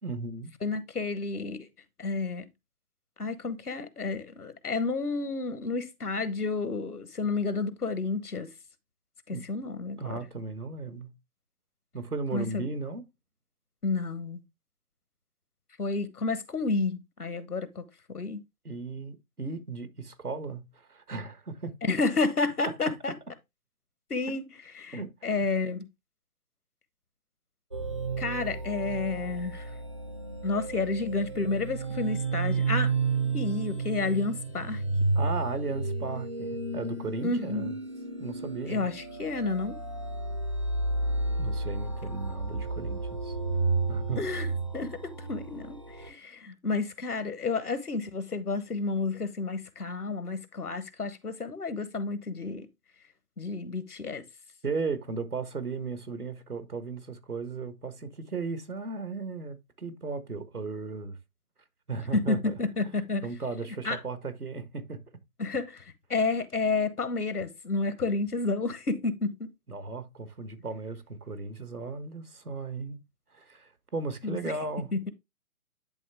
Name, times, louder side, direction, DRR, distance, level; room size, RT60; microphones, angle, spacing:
voice 1, 0.0-0.5 9.3-9.4 10.0-11.1 11.9-13.1 18.6-21.7 24.9-25.4 35.1-37.8 38.2-38.9 41.4-43.4 43.9-44.2 54.6-61.2 61.9-62.6 63.2-65.0 69.7-73.0 73.3-74.9, right 4 dB, 80° right, 1.5 m, -36 dB
voice 2, 0.6-1.7 2.0-2.4 3.2-8.5 9.3-10.0 12.3-12.7 13.8-14.4 15.8-17.8 18.1-18.4 21.8-23.1 24.1-24.4 24.8-25.9 28.2-29.7 30.4-32.9 33.3-34.8 37.2-37.7 38.7-39.8 44.2-44.5 44.7-52.7 53.4-54.2 62.1-63.3 63.8-64.0 65.4-65.8 66.1-69.5 74.2-74.4 74.9-75.1, left 3 dB, 85° left, 1.2 m, -30 dB
sound 1, 27.7-46.1, right 3 dB, 20° right, 0.4 m, -32 dB
10.5 x 3.6 x 3.3 m
figure-of-eight pair, 140°, 44 cm